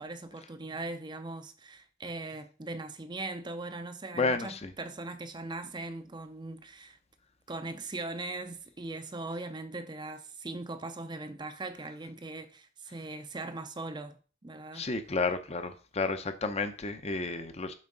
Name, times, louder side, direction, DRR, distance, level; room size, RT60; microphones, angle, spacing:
voice 1, 0.0-7.0 7.5-14.9, right 2 dB, 20° right, 0.5 m, -40 dB
voice 2, 4.2-4.7 14.7-17.7, left 3 dB, 30° left, 0.6 m, -31 dB
7.2 x 5.7 x 3.8 m
head